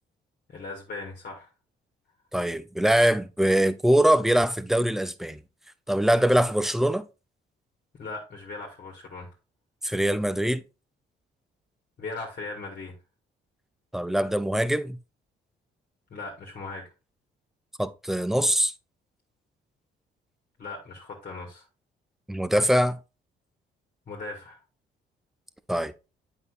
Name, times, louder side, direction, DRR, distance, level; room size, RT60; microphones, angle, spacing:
voice 1, 0.5-1.5 8.0-9.3 12.0-12.9 16.1-16.8 20.6-21.7 24.1-24.6, left 3 dB, 45° left, 1.5 m, -38 dB
voice 2, 2.3-5.4 5.9-7.1 9.8-10.6 13.9-15.0 17.8-18.7 22.3-23.0 25.7-25.9, right 1 dB, ahead, 0.4 m, -23 dB
7.9 x 5.5 x 2.4 m
cardioid pair, 90°, 20 cm